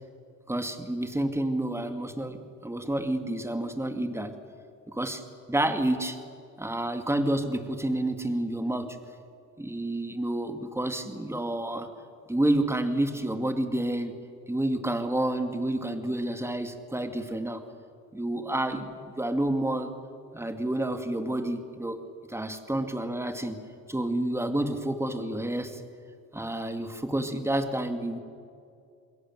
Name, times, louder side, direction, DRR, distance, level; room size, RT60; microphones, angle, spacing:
voice 1, 0.5-4.3 4.9-5.2 5.5-6.2 6.6-9.0 9.6-11.9 12.3-14.1 14.5-17.6 18.1-19.9 20.3-22.0 22.3-23.6 23.9-25.8 26.3-28.2, right 1 dB, 10° right, 7 dB, 2.4 m, -29 dB
29.0 x 21.5 x 7.9 m, 2.4 s
cardioid pair, 90°, 30 cm